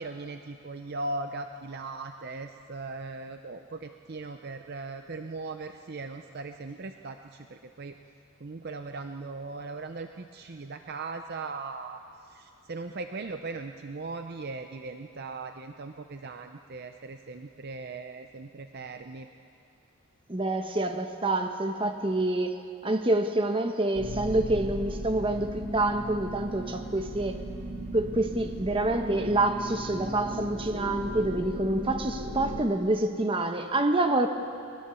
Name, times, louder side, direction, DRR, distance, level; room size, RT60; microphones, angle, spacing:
voice 1, 0.0-8.0 8.4-12.0 12.3-19.3, right 3 dB, 45° right, 7 dB, 0.6 m, -39 dB
voice 2, 20.3-27.4 27.9-34.3, right 2 dB, 25° right, 6 dB, 1.0 m, -27 dB
sound 1, 23.9-32.6, right 1 dB, 80° right, 2.6 m, -36 dB
22.5 x 20.0 x 6.9 m, 2.5 s
head